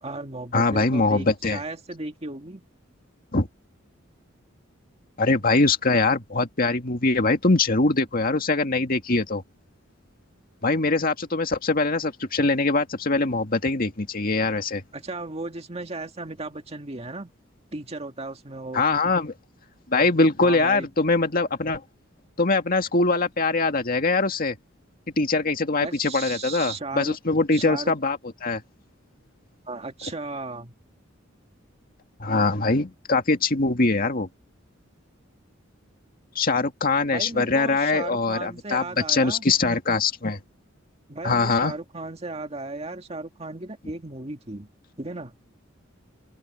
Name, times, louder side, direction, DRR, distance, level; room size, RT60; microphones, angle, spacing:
voice 1, 0.0-2.6 14.9-17.3 17.7-18.8 20.4-20.9 25.8-27.2 27.5-27.9 29.7-30.7 37.1-39.4 41.1-44.7 45.0-45.4, right 2 dB, 30° right, 2.0 m, -35 dB
voice 2, 0.5-1.6 3.3-3.5 5.2-9.4 10.6-14.8 18.7-19.3 19.9-21.8 22.4-24.6 25.2-28.6 32.2-34.3 36.4-40.4 41.2-41.7, left 3 dB, 45° left, 2.1 m, -22 dB
open air
head